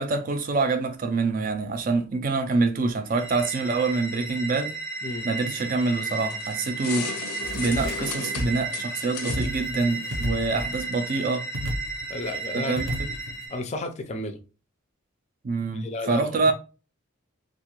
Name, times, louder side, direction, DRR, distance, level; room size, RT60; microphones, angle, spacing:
voice 1, 0.0-4.8 5.2-7.1 7.5-11.5 12.5-13.1 15.4-16.5, right 3 dB, 40° right, 0.3 m, -26 dB
sound 1, 3.1-13.6, right 4 dB, 5° right, 0.7 m, -34 dB
sound 2, 5.8-11.1, left 7 dB, 85° left, 0.5 m, -38 dB
sound 3, 7.4-8.1 8.4-8.7 9.3-9.8 10.1-11.0 11.5-12.2 12.8-13.5, equal, 65° right, 0.8 m, -32 dB
voice 2, 12.1-12.9 13.5-14.4 15.7-16.5, left 2 dB, 30° left, 0.4 m, -33 dB
2.5 x 2.3 x 2.9 m
head